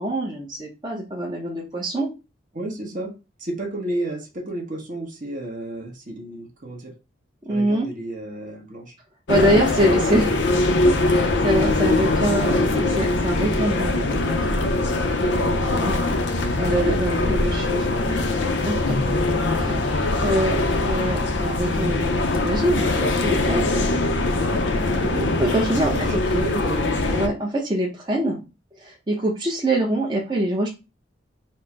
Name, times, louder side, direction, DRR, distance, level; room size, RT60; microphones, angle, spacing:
voice 1, 0.0-2.1 7.5-7.9 9.3-14.6 15.2-16.0 16.6-17.9 18.7-19.0 19.5-19.7 20.2-20.6 20.9-23.6 25.4-26.1 27.1-28.4 28.8-30.7, right 1 dB, 25° right, -3 dB, 0.8 m, -24 dB
voice 2, 2.5-3.1 3.4-6.9 7.5-9.0 19.4-19.8 24.9-25.3 25.9-26.9, right 1 dB, 45° right, 1 dB, 1.1 m, -32 dB
sound 1, 9.3-27.3, left 2 dB, 65° left, 0.6 m, -22 dB
4.4 x 2.1 x 4.6 m, 0.28 s
head